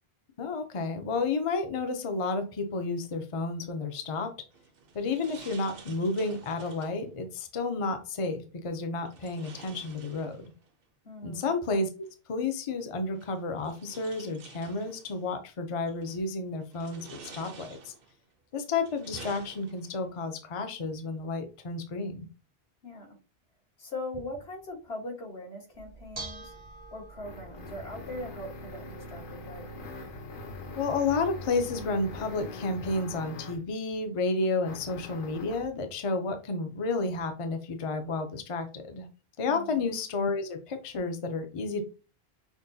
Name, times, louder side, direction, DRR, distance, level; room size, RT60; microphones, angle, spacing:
voice 1, 0.4-4.3 4.9-10.5 11.2-17.9 18.5-22.3 30.8-39.1 39.4-41.8, left 3 dB, 40° left, 6 dB, 0.5 m, -31 dB
sound 1, 4.5-7.0 9.0-10.7 12.1-12.2 13.1-15.2 15.9-16.2 16.7-18.2 18.7-20.1, right 5 dB, 65° right, 0.9 m, -50 dB
voice 2, 11.0-11.5 22.8-23.2 23.8-26.5 26.9-29.9 39.4-39.9, left 1 dB, 75° left, 1 dB, 1.6 m, -41 dB
Bell / Dishes pots and pans, 25.7-32.4, right 3 dB, 35° right, 0.6 m, -48 dB
sound 2, 26.5-33.7 34.6-35.7, left 3 dB, 60° left, 0.9 m, -43 dB
6.0 x 2.2 x 2.6 m, 0.33 s
omnidirectional pair, 1.0 m